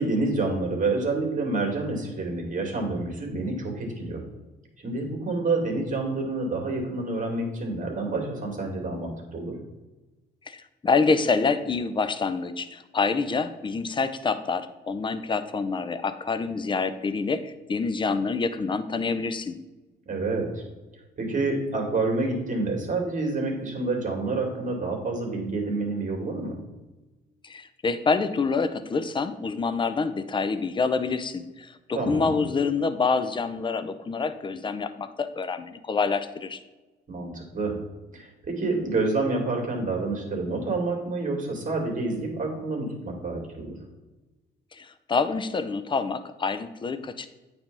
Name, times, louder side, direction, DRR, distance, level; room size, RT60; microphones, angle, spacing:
voice 1, 0.0-4.2 4.8-9.5 20.1-20.6 21.2-26.6 31.9-32.4 37.1-37.7 38.1-43.7, right 3 dB, 40° right, 1 dB, 2.3 m, -28 dB
voice 2, 10.5-19.5 27.4-36.6 44.7-47.3, left 4 dB, 25° left, 11 dB, 0.6 m, -27 dB
8.8 x 3.4 x 5.4 m, 1.1 s
cardioid pair, 90°, 20 cm